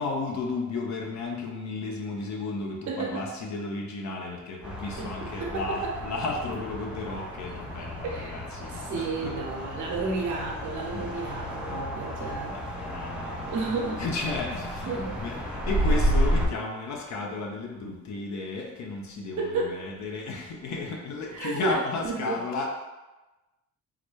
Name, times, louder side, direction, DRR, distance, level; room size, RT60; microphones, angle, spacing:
voice 1, 0.0-9.3 10.9-11.1 11.7-13.6 14.0-22.7, left 3 dB, 65° left, 0 dB, 0.8 m, -34 dB
voice 2, 2.9-3.3 5.0-6.0 8.0-8.4 8.7-12.6 13.5-14.1 14.9-15.2 19.4-19.8 21.3-22.4, right 3 dB, 70° right, 0 dB, 0.8 m, -32 dB
sound 1, 4.6-16.5, equal, 5° right, 0.5 m, -31 dB
3.8 x 2.2 x 3.2 m, 1.1 s
cardioid pair, 90°, 30 cm